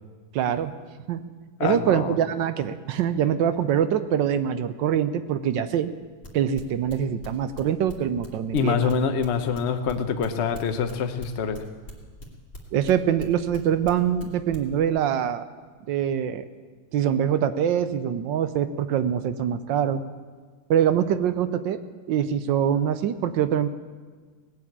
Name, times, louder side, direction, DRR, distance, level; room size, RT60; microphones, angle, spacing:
voice 1, 0.3-0.7 1.1-1.2 1.6-5.9 6.3-8.9 12.7-15.5 15.9-16.4 16.9-20.0 20.7-21.8 22.1-23.7, right 9 dB, 70° right, 12 dB, 1.3 m, -24 dB
voice 2, 1.6-2.1 8.5-11.6, left 6 dB, 50° left, 7 dB, 0.8 m, -25 dB
sound 1, 6.2-9.6 9.9-13.6 13.8-14.2 14.5-14.9, left 1 dB, 25° left, 2.3 m, -41 dB
18.5 x 7.7 x 8.7 m, 1.5 s
omnidirectional pair, 2.3 m